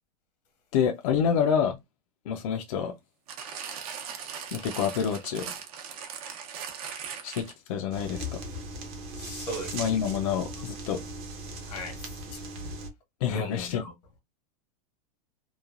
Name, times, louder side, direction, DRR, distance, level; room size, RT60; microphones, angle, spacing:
voice 1, 0.7-1.8 2.3-2.9 4.5-5.5 7.2-8.4 9.7-11.0 13.2-13.8, left 7 dB, 60° left, 0.4 m, -27 dB
sound 1, 3.3-7.7 8.5-8.6, right 7 dB, 65° right, 0.8 m, -39 dB
sound 2, 7.9-12.9, right 1 dB, 30° right, 0.6 m, -38 dB
voice 2, 9.2-9.7 11.6-12.4 13.3-13.9, equal, 85° left, 1.3 m, -38 dB
3.1 x 2.2 x 2.4 m
supercardioid pair, 155°, 20 cm